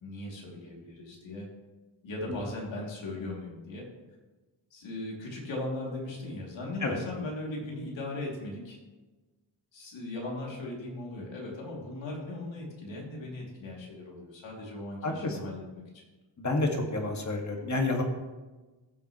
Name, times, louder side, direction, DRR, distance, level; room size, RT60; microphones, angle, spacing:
voice 1, 0.0-1.5 2.0-3.9 4.7-8.8 9.7-15.6, left 2 dB, 80° left, -2 dB, 2.9 m, -38 dB
voice 2, 15.0-15.5 16.4-18.0, left 2 dB, 40° left, 2 dB, 1.8 m, -29 dB
15.5 x 7.0 x 3.1 m, 1.2 s
wide cardioid pair, 100°, 45 cm